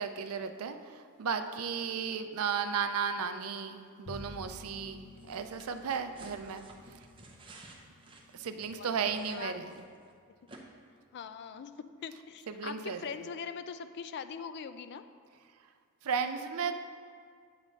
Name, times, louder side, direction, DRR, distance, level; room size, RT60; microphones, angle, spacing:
voice 1, 0.0-6.7 8.3-9.7 12.5-13.1 16.0-16.7, right 6 dB, 75° right, 9 dB, 0.5 m, -34 dB
Bowed string instrument, 4.0-10.5, left 2 dB, 70° left, 0.9 m, -53 dB
sound 1, 5.2-10.1 10.5-10.6, right 2 dB, 25° right, 0.7 m, -54 dB
voice 2, 8.7-9.6 11.1-15.0, left 6 dB, 50° left, 10 dB, 0.3 m, -42 dB
8.8 x 3.2 x 6.4 m, 2.1 s
head